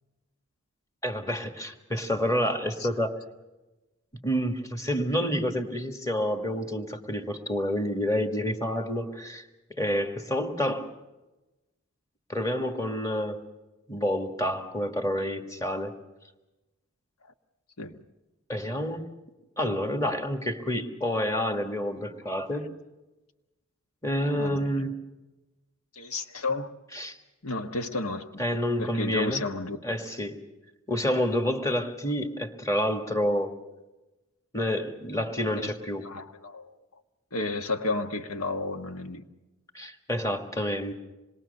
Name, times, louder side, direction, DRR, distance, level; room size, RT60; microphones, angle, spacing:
voice 1, 1.0-3.2 4.2-10.9 12.3-13.5 13.9-16.0 18.5-19.1 19.6-22.7 24.0-24.9 26.9-27.2 28.4-29.4 29.8-30.4 30.9-33.6 34.5-36.1 39.7-40.9, equal, 15° left, 6 dB, 1.7 m, -28 dB
voice 2, 24.3-24.9 25.9-26.8 27.4-28.4 28.8-29.8 35.5-35.7 36.0-36.7 37.3-39.2, left 2 dB, 85° left, 7 dB, 1.5 m, -32 dB
26.5 x 21.5 x 6.7 m, 1.1 s
head